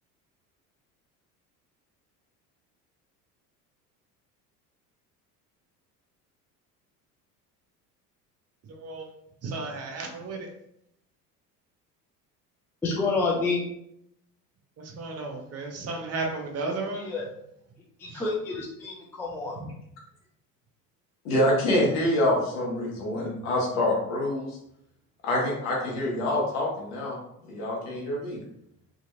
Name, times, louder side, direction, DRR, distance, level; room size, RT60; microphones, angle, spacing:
voice 1, 9.5-10.4 15.0-17.0, right 3 dB, 35° right, 1 dB, 0.7 m, -33 dB
voice 2, 12.8-13.6 16.9-17.3 18.1-19.6, left 3 dB, 5° left, -2 dB, 0.4 m, -28 dB
voice 3, 21.2-24.6 25.2-27.2 27.4-28.4, left 1 dB, 70° left, -3 dB, 1.2 m, -26 dB
2.8 x 2.6 x 2.6 m, 0.77 s
hypercardioid pair, 65°, 47 cm